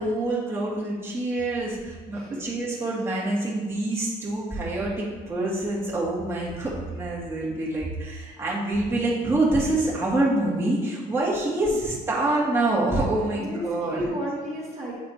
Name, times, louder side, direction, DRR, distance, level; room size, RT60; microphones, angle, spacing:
voice 1, 0.0-14.0, right 2 dB, 15° right, -6 dB, 1.9 m, -26 dB
voice 2, 2.1-2.4 11.6-11.8 13.4-14.9, right 1 dB, 40° right, -6 dB, 1.4 m, -32 dB
8.7 x 4.1 x 3.1 m, 1.4 s
cardioid pair, 110°, 17 cm